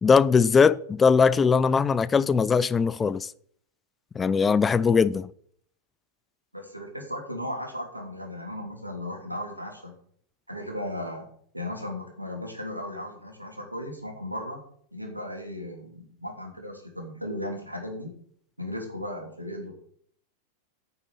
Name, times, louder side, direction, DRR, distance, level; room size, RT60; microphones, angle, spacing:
voice 1, 0.0-3.3 4.2-5.3, left 5 dB, 15° left, 0.4 m, -20 dB
voice 2, 6.5-9.9 10.5-11.3 11.5-14.6 14.9-18.1 18.6-19.7, left 1 dB, 90° right, 3.0 m, -36 dB
9.1 x 6.9 x 8.3 m
figure-of-eight pair, 90°, 0 cm